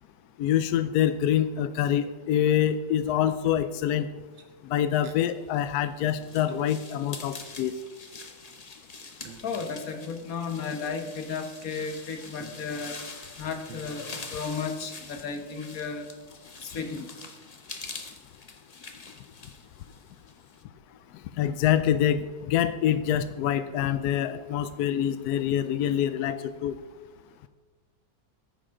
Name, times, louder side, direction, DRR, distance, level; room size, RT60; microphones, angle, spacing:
voice 1, 0.4-4.1 4.6-7.7 21.4-26.8, left 10 dB, 80° left, 12 dB, 0.8 m, -25 dB
sound 1, 4.1-5.1 5.5-5.6 5.9-7.5 7.8-11.8 12.4-14.9, right 3 dB, 75° right, 1.9 m, -52 dB
sound 2, 5.5-20.6, left 3 dB, 35° left, 0.6 m, -45 dB
voice 2, 9.4-13.0 13.4-16.1 16.6-17.1, left 5 dB, 50° left, 6 dB, 1.5 m, -34 dB
14.0 x 10.0 x 3.7 m, 1.3 s
omnidirectional pair, 2.1 m